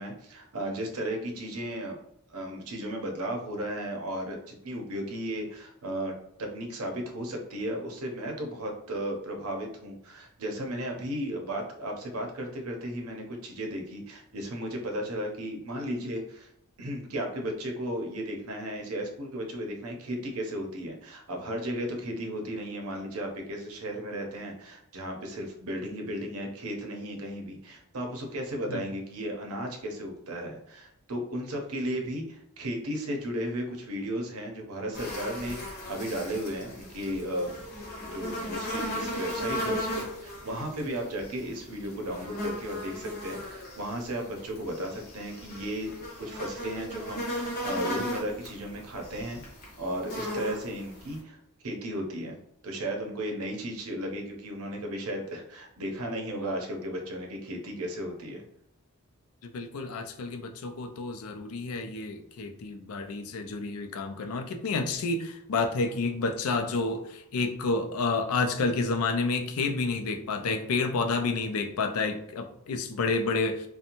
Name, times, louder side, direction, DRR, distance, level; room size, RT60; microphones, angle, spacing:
voice 1, 0.0-2.0 2.3-16.5 16.8-37.5 38.0-45.9 46.2-49.4 49.8-51.4 51.6-52.4 52.6-58.4, equal, 75° right, 2 dB, 0.6 m, -35 dB
sound 1, 34.9-51.2, equal, 45° left, 0.8 m, -37 dB
voice 2, 59.4-73.7, left 3 dB, 75° left, 7 dB, 0.4 m, -30 dB
2.9 x 2.1 x 2.5 m, 0.76 s
head